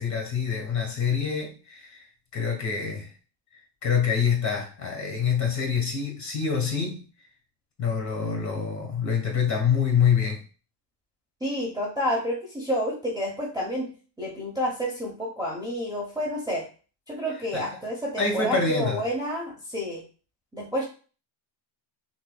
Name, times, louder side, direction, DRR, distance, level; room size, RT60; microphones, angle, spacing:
voice 1, 0.0-2.1 2.3-3.1 3.8-7.0 7.8-10.4 17.5-17.8 18.2-19.0, left 6 dB, 35° left, 1 dB, 1.3 m, -26 dB
voice 2, 11.4-13.9 14.2-16.6 17.1-20.0 20.5-20.8, equal, 10° right, -5 dB, 0.8 m, -29 dB
5.6 x 2.0 x 2.3 m, 0.37 s
cardioid pair, 125°, 49 cm